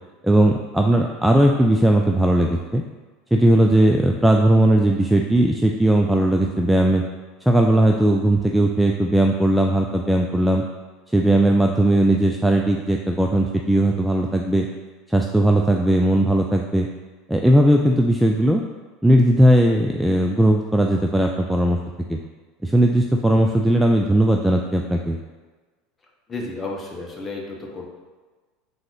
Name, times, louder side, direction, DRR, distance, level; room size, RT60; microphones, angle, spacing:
voice 1, 0.2-2.8 3.3-7.0 7.4-10.6 11.1-14.7 15.1-16.9 17.3-18.6 19.0-21.8 22.1-22.2 22.6-25.2, right 1 dB, 5° right, 1 dB, 0.3 m, -18 dB
voice 2, 26.3-27.9, left 2 dB, 20° left, -2 dB, 1.0 m, -32 dB
3.7 x 2.7 x 4.7 m, 1.3 s
figure-of-eight pair, 75°, 0 cm